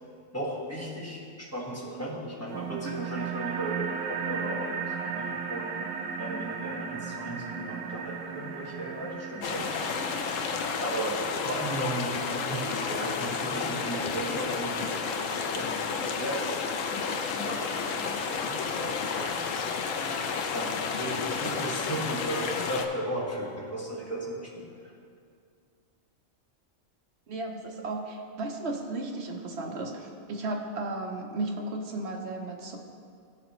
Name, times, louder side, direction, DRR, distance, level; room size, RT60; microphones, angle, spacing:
voice 1, 0.3-4.7 5.0-5.7 6.2-9.7 10.8-19.6 20.5-24.7, right 1 dB, 10° left, -5 dB, 1.5 m, -36 dB
sound 1, 2.5-11.5, right 6 dB, 80° right, 1.0 m, -36 dB
sound 2, 9.4-22.9, left 5 dB, 90° left, 1.0 m, -31 dB
voice 2, 27.3-32.8, right 2 dB, 60° right, 2 dB, 1.0 m, -34 dB
13.5 x 5.0 x 3.1 m, 2.3 s
omnidirectional pair, 1.3 m